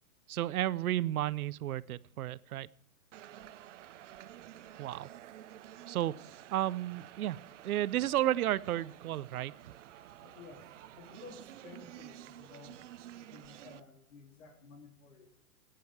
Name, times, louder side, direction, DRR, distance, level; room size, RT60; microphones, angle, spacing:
voice 1, 0.3-2.7 4.8-5.1 5.9-6.1 6.5-7.4 7.6-9.5, right 13 dB, 90° right, 20 dB, 0.7 m, -32 dB
sound 1, 3.1-13.8, right 12 dB, 60° right, 0.8 m, -51 dB
voice 2, 10.2-12.8 13.2-15.4, left 4 dB, 70° left, 4 dB, 2.6 m, -54 dB
16.5 x 9.4 x 4.7 m, 0.68 s
hypercardioid pair, 160°, 42 cm